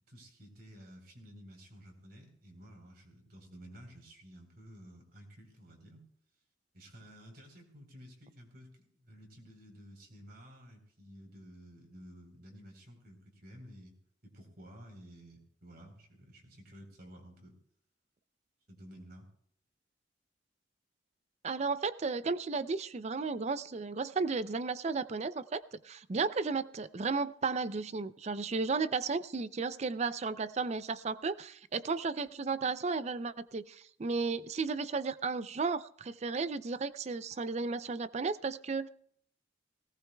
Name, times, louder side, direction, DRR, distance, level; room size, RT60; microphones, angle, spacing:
voice 1, 0.1-6.1 6.7-13.9 14.2-17.5 18.7-19.3, equal, 55° right, 2 dB, 3.8 m, -53 dB
voice 2, 21.4-38.9, right 4 dB, 35° right, 15 dB, 0.4 m, -34 dB
18.5 x 18.0 x 2.3 m, 0.63 s
head